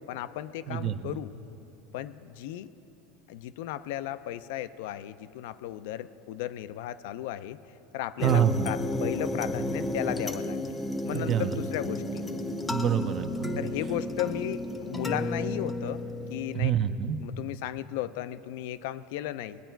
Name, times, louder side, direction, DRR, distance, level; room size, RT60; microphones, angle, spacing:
voice 1, 0.1-1.3 1.9-2.7 3.3-7.6 7.9-10.7 11.0-12.2 13.6-16.0 16.3-16.7 17.2-19.6, left 13 dB, 75° left, 14 dB, 0.4 m, -35 dB
voice 2, 0.7-1.2 8.2-8.7 11.1-11.6 12.7-13.7 16.5-17.2, right 9 dB, 40° right, 10 dB, 0.6 m, -27 dB
sound 1, 8.2-16.6, left 1 dB, 10° left, 0.7 m, -32 dB
20.0 x 9.1 x 4.5 m, 3.0 s
supercardioid pair, 125°, 0 cm